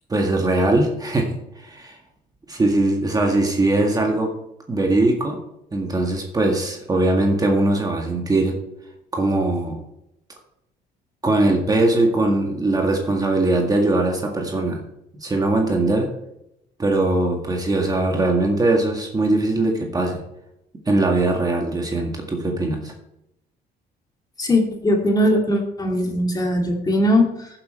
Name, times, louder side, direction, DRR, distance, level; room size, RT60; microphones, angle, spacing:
voice 1, 0.1-2.0 2.5-4.3 4.7-5.4 5.7-8.6 9.1-9.8 11.2-14.8 15.1-16.1 16.8-20.2 20.9-22.9, right 2 dB, 20° right, 1 dB, 1.9 m, -21 dB
voice 2, 24.4-27.5, left 1 dB, 25° left, 1 dB, 2.5 m, -20 dB
14.5 x 7.6 x 4.5 m, 0.83 s
cardioid pair, 110°, 17 cm